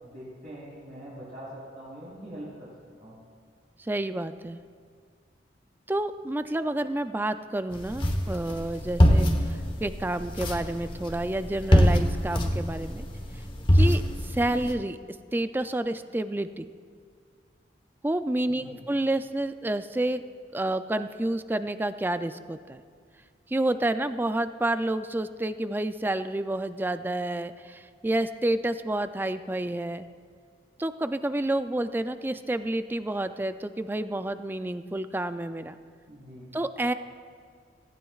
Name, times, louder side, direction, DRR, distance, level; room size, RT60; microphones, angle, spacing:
voice 1, 0.0-2.7 3.0-3.2 18.5-18.8 36.1-36.6, right 1 dB, 50° right, -10 dB, 3.7 m, -43 dB
voice 2, 3.8-4.6 5.9-13.1 13.7-15.0 15.3-16.7 18.0-20.2 20.5-22.8 23.5-30.1 30.8-35.7 36.5-36.9, right 1 dB, 10° right, 10 dB, 0.3 m, -29 dB
sound 1, 7.7-14.7, equal, 25° left, 1.1 m, -24 dB
17.5 x 15.5 x 2.4 m, 2.1 s
head